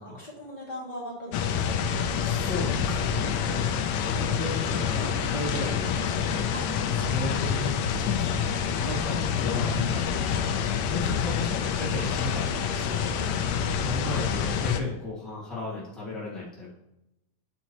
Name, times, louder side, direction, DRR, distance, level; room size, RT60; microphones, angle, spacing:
voice 1, 0.0-1.8 3.2-3.6 6.5-6.6 6.9-7.1 7.8-8.0 9.7-9.9 13.1-13.4, left 1 dB, 20° left, -6 dB, 1.5 m, -41 dB
sound 1, 1.3-14.8, left 7 dB, 80° left, 1.6 m, -27 dB
voice 2, 2.2-3.7 4.0-6.4 7.1-8.5 8.8-9.7 10.3-10.6 10.8-13.2 13.8-16.7, left 3 dB, ahead, -7 dB, 0.4 m, -35 dB
sound 2, 4.2-9.5 9.8-10.0, left 2 dB, 45° right, 1.3 m, -45 dB
11.0 x 4.4 x 2.9 m, 0.91 s
omnidirectional pair, 3.7 m